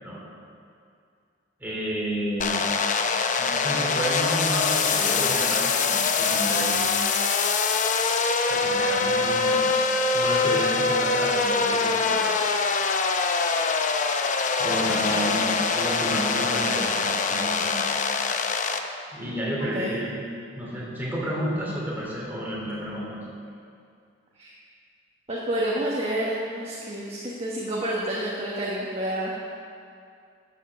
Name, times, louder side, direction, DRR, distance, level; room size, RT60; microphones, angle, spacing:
voice 1, 1.6-2.7 3.4-6.8 8.5-9.6 10.1-12.3 14.6-17.9 19.1-20.2 20.6-23.2, equal, 10° right, -6 dB, 3.4 m, -31 dB
sound 1, 2.4-18.8, left 4 dB, 40° left, 0.7 m, -24 dB
voice 2, 14.8-15.4 19.7-20.0 24.4-24.5 25.3-29.4, right 1 dB, 35° right, -5 dB, 1.3 m, -29 dB
11.5 x 7.5 x 6.8 m, 2.4 s
head